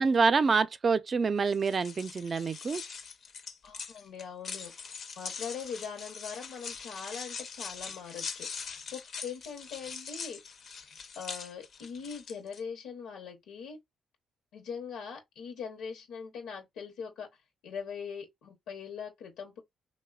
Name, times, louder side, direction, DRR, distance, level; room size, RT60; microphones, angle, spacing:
voice 1, 0.0-2.8, right 4 dB, 40° right, 0.4 m, -26 dB
sound 1, 1.5-12.6, left 5 dB, 55° left, 0.5 m, -42 dB
voice 2, 3.6-4.7 5.2-10.4 11.1-13.8 14.5-17.3 17.6-19.6, left 6 dB, 90° left, 0.8 m, -41 dB
3.1 x 2.1 x 2.2 m
cardioid pair, 90°, 0 cm